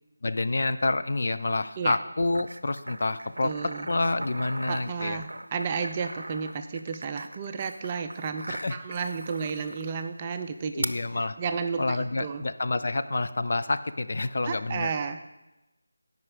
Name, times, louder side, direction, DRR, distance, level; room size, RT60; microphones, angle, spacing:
voice 1, 0.2-3.5 3.9-5.2 8.5-8.8 10.7-11.4 11.8-14.9, left 2 dB, 55° left, 11 dB, 0.5 m, -28 dB
sound 1, 2.3-10.0 10.8-10.9, right 1 dB, 80° right, 0.5 m, -40 dB
voice 2, 3.4-3.9 4.7-10.9 11.4-12.5 14.4-15.2, right 5 dB, 20° right, 7 dB, 0.4 m, -32 dB
14.0 x 5.3 x 4.9 m, 1.0 s
figure-of-eight pair, 170°, 0 cm